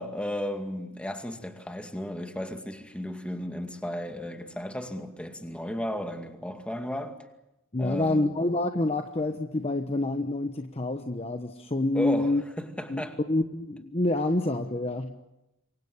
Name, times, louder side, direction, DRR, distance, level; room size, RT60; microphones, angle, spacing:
voice 1, 0.0-7.2 7.8-8.3 11.9-13.2, equal, 5° left, 2.3 m, -34 dB
voice 2, 7.7-12.4 12.9-15.2, left 2 dB, 30° left, 1.1 m, -27 dB
27.5 x 23.5 x 7.2 m
head